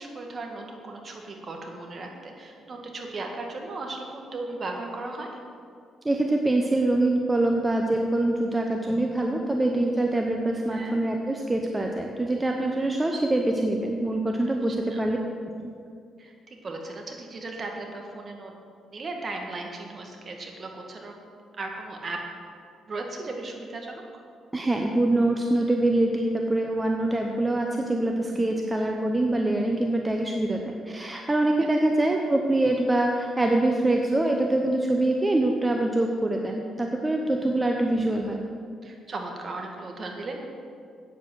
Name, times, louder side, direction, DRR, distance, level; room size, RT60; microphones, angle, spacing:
voice 1, 0.0-5.4 10.7-11.0 14.5-14.6 14.9-15.0 16.2-18.5 18.9-21.1 21.5-22.2 22.9-24.2 28.2-28.6 31.6-31.7 37.2-37.6 38.8-40.4, right 2 dB, 40° right, 2 dB, 1.7 m, -37 dB
voice 2, 6.0-15.2 24.5-38.4, right 1 dB, 15° right, 1 dB, 0.8 m, -24 dB
8.8 x 7.8 x 6.3 m, 2.3 s
cardioid pair, 90°, 0 cm